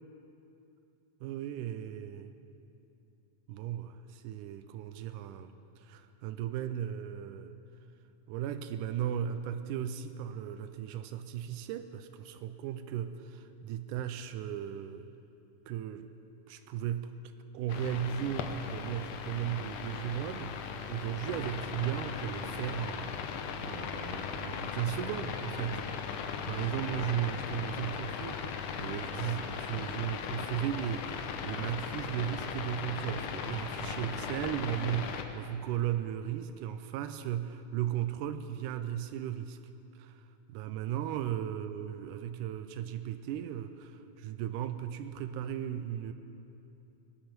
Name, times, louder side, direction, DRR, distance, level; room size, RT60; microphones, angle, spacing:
voice 1, 1.2-2.3 3.5-7.5 8.3-15.1 15.7-16.1 16.5-17.1 17.5-25.8 26.4-39.6 39.9-46.1, right 10 dB, 90° right, 10 dB, 2.1 m, -36 dB
sound 1, 17.7-35.2, left 7 dB, 90° left, 2.4 m, -38 dB
18.5 x 11.0 x 5.9 m, 2.8 s
omnidirectional pair, 3.6 m